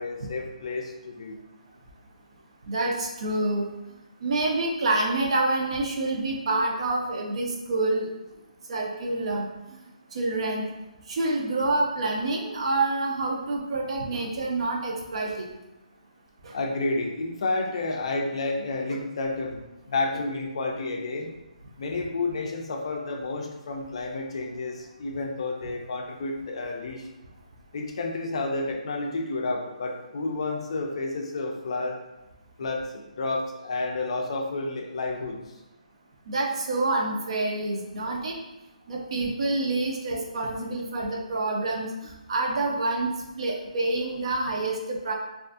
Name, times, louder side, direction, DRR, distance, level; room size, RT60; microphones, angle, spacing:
voice 1, 0.0-1.4 16.5-21.3 21.8-27.1 27.7-32.0 32.6-35.4, left 3 dB, 45° left, 1 dB, 0.4 m, -30 dB
voice 2, 2.7-3.7 4.2-8.1 8.7-9.5 10.1-10.6 11.1-15.5 16.4-16.6 36.3-38.3 38.9-41.9 42.3-45.1, right 2 dB, 45° right, 0 dB, 0.4 m, -27 dB
2.4 x 2.4 x 2.4 m, 0.97 s
hypercardioid pair, 165°, 4 cm